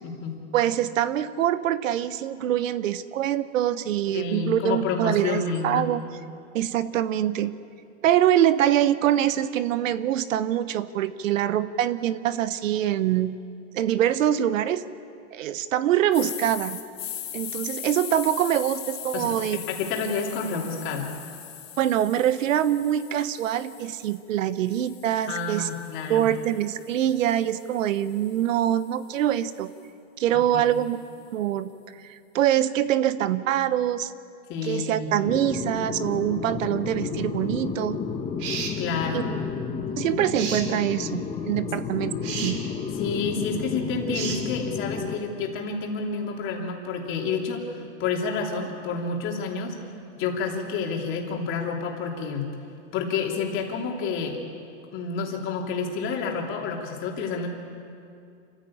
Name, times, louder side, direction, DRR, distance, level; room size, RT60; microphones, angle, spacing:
voice 1, 0.0-0.4 4.1-5.8 19.1-21.1 25.3-26.3 30.3-30.7 34.5-35.1 38.8-39.3 42.9-47.7 48.0-49.8 50.2-52.5 52.9-54.4 54.9-57.5, left 4 dB, 30° left, 0 dB, 3.2 m, -29 dB
voice 2, 0.5-6.0 6.5-7.5 8.0-13.4 13.7-14.8 15.3-16.8 17.3-19.6 21.8-25.7 26.1-29.7 30.2-31.0 31.3-31.7 32.1-34.1 34.6-38.0 39.1-39.2 40.0-42.6, right 11 dB, 80° right, 14 dB, 1.0 m, -24 dB
sound 1, 16.1-24.2 24.7-28.9, left 10 dB, 90° left, 3.7 m, -40 dB
sound 2, 35.2-45.1, left 6 dB, 15° left, 1.1 m, -31 dB
sound 3, 38.4-38.8 40.3-40.7 42.2-42.6 44.1-44.4, right 6 dB, 40° right, 2.9 m, -32 dB
27.0 x 15.0 x 8.7 m, 2.5 s
supercardioid pair, 155°, 39 cm